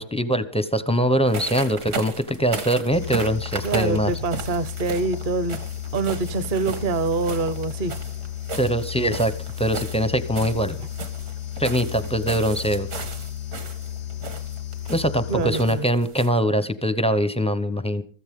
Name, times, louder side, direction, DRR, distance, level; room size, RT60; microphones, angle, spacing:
voice 1, 0.0-4.1 8.6-9.3 9.6-10.8 11.6-12.9 14.9-18.0, equal, 10° left, 0.4 m, -22 dB
sound 1, 1.3-16.3, right 3 dB, 70° right, 2.3 m, -36 dB
sound 2, 2.9-16.0, left 11 dB, 90° left, 1.6 m, -34 dB
voice 2, 3.6-5.6 5.9-7.9 15.3-15.8, right 3 dB, 40° right, 0.8 m, -25 dB
22.5 x 14.0 x 3.7 m
omnidirectional pair, 1.7 m